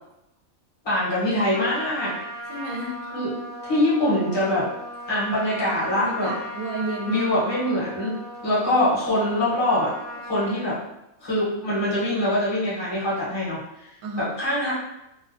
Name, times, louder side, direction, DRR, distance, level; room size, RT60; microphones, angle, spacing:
voice 1, 0.8-2.2 3.1-3.3 3.6-4.7 5.1-6.3 7.0-8.2 8.4-9.9 10.2-10.8 11.2-13.9 14.2-14.7, left 1 dB, 25° left, -8 dB, 0.8 m, -23 dB
Trumpet, 1.5-10.6, equal, 50° left, 1.0 m, -37 dB
voice 2, 2.5-3.0 5.9-7.5 14.0-14.3, right 1 dB, 75° right, -1 dB, 1.0 m, -31 dB
2.5 x 2.2 x 2.5 m, 0.87 s
omnidirectional pair, 1.5 m